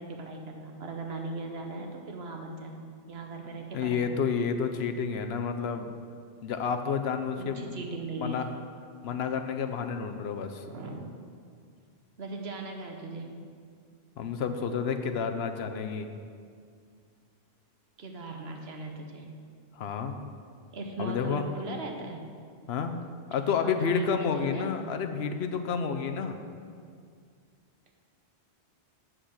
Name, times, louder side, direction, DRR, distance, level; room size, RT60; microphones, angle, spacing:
voice 1, 0.0-4.0 7.3-8.5 10.6-11.1 12.2-13.4 18.0-19.3 20.7-22.2 23.6-24.7, right 2 dB, 70° right, 2 dB, 1.3 m, -39 dB
voice 2, 3.7-5.9 6.4-7.7 8.2-8.5 9.0-10.6 14.2-16.1 19.7-20.2 21.0-21.4 22.7-22.9 23.3-26.4, left 6 dB, 75° left, 7 dB, 0.9 m, -30 dB
8.1 x 6.3 x 6.3 m, 2.2 s
omnidirectional pair, 1.1 m